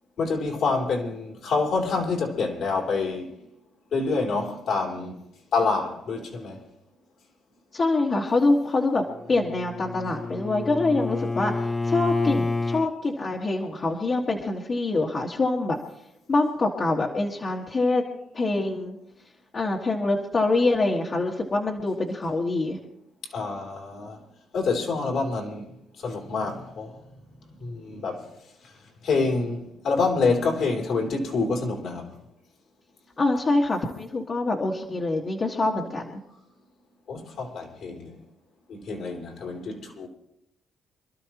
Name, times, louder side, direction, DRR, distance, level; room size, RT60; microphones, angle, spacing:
voice 1, 0.2-3.3 3.9-5.2 5.5-6.7 23.3-24.2 24.5-25.7 26.0-27.0 27.6-28.3 28.6-28.7 29.0-32.1 37.1-38.2 38.7-40.1, left 4 dB, 65° left, 3.2 m, -27 dB
voice 2, 7.7-11.5 11.8-15.8 16.3-18.0 18.3-19.0 19.5-22.8 33.2-36.2, left 2 dB, 40° left, 1.8 m, -25 dB
Bowed string instrument, 9.1-12.9, left 3 dB, 20° left, 0.8 m, -29 dB
27.0 x 12.5 x 3.0 m
cardioid pair, 90°, 0 cm